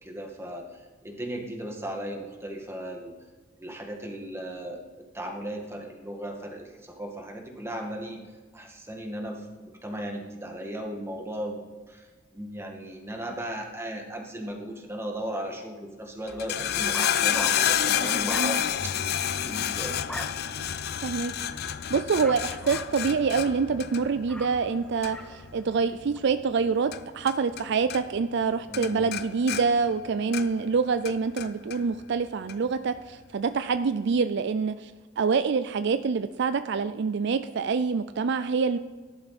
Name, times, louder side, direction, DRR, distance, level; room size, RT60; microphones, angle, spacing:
voice 1, 0.0-0.8 1.0-3.1 3.6-4.8 5.1-8.2 8.5-9.5 9.8-11.6 11.9-12.1 12.3-20.0 28.7-29.1, right 1 dB, 15° right, 1 dB, 1.9 m, -36 dB
sound 1, 16.3-27.6 27.9-28.5 28.7-30.7 31.0-31.8 32.5-32.6, left 9 dB, 55° left, 0.5 m, -29 dB
sound 2, 16.3-26.2, left 1 dB, 5° left, 0.8 m, -43 dB
voice 2, 21.0-21.4 21.9-38.8, right 5 dB, 60° right, 11 dB, 0.4 m, -26 dB
16.0 x 11.5 x 4.2 m, 1.4 s
head